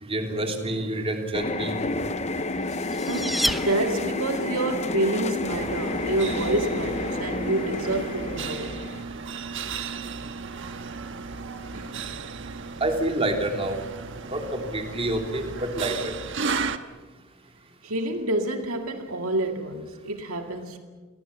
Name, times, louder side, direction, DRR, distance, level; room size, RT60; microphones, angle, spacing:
voice 1, 0.0-1.8 12.8-13.8 14.3-16.1, right 1 dB, 25° right, 3.3 m, -28 dB
sound 1, 1.3-9.0, left 2 dB, 30° left, 0.9 m, -30 dB
sound 2, 2.6-4.4, equal, ahead, 0.8 m, -30 dB
voice 2, 3.1-8.8 11.7-12.1 17.8-20.8, right 2 dB, 75° right, 2.1 m, -28 dB
sound 3, 5.4-16.8, right 4 dB, 60° right, 1.3 m, -34 dB
30.0 x 22.5 x 7.1 m
head